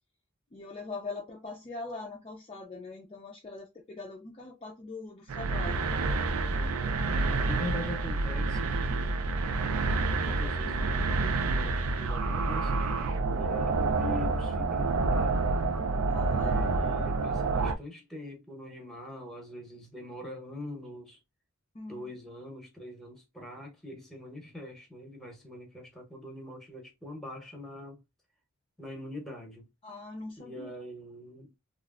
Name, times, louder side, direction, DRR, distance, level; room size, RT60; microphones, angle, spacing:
voice 1, 0.5-5.9 16.1-16.8 21.7-22.2 29.8-30.7, left 3 dB, 25° left, 0.4 m, -42 dB
sound 1, 5.3-17.7, right 3 dB, 80° right, 0.4 m, -28 dB
voice 2, 6.6-9.2 10.2-15.7 16.3-21.2 21.9-28.0 28.8-29.7 30.4-31.6, left 2 dB, ahead, 0.8 m, -43 dB
3.1 x 2.4 x 2.3 m
head